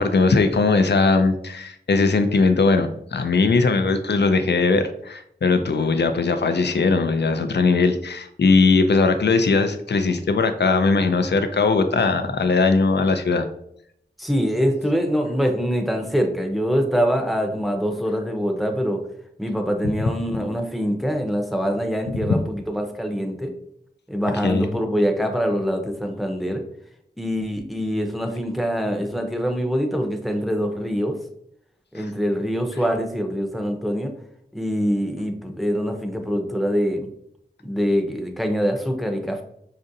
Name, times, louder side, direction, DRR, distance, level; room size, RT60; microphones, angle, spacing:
voice 1, 0.0-13.5 22.2-22.4 24.4-24.7 32.0-32.1, left 4 dB, 75° left, 8 dB, 0.4 m, -19 dB
voice 2, 14.2-19.0 19.4-23.5 24.1-26.6 27.2-31.1 31.9-34.1 34.5-37.1 37.6-39.4, equal, ahead, 4 dB, 0.6 m, -24 dB
5.1 x 2.5 x 2.6 m, 0.72 s
wide cardioid pair, 55°, 18 cm